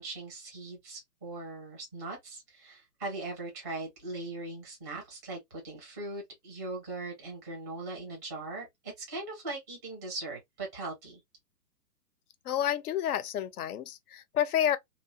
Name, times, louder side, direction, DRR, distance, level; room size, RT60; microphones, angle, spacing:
voice 1, 0.0-11.2, right 2 dB, 10° right, 0.5 m, -40 dB
voice 2, 12.4-14.8, left 10 dB, 65° left, 0.6 m, -29 dB
2.7 x 2.1 x 2.5 m
hypercardioid pair, 140°, 50 cm